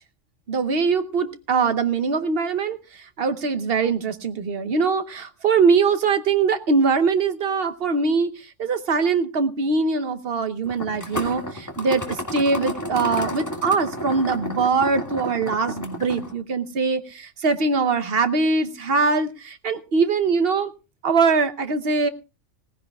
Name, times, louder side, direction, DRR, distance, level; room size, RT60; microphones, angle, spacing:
voice 1, 0.5-2.8 3.2-8.3 8.6-20.7 21.0-22.1, right 4 dB, 55° right, 9 dB, 1.0 m, -22 dB
sound 1, 10.7-16.3, left 1 dB, 15° left, 1.8 m, -31 dB
18.0 x 15.5 x 2.3 m, 0.31 s
omnidirectional pair, 1.3 m